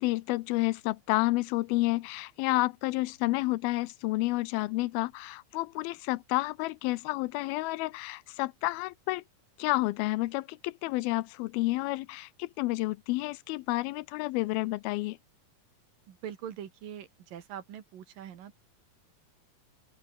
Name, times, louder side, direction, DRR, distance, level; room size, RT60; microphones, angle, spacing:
voice 1, 0.0-9.2 9.6-15.2, left 20 dB, 85° left, 2.5 m, -30 dB
voice 2, 16.1-18.6, right 9 dB, 70° right, 3.6 m, -43 dB
open air
omnidirectional pair, 4.3 m